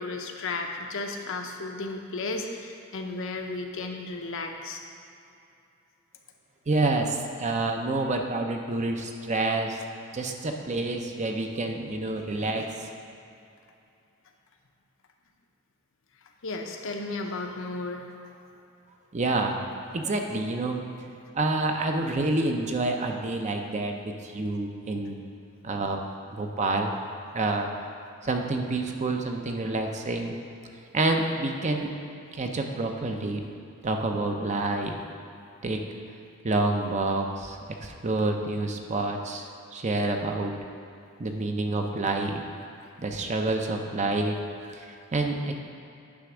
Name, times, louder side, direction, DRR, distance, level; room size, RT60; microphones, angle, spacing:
voice 1, 0.0-4.8 16.4-18.1, left 3 dB, 65° left, 3 dB, 0.7 m, -34 dB
voice 2, 6.7-9.8 10.1-12.9 19.1-19.5 19.9-20.8 21.3-25.2 25.6-26.0 26.3-26.9 27.3-27.7 28.2-30.4 30.9-31.9 32.3-33.4 33.8-35.0 35.6-35.8 36.4-40.6 41.2-42.4 43.0-44.4 44.7-45.5, right 2 dB, 35° right, 3 dB, 0.6 m, -28 dB
9.7 x 3.4 x 6.1 m, 2.7 s
head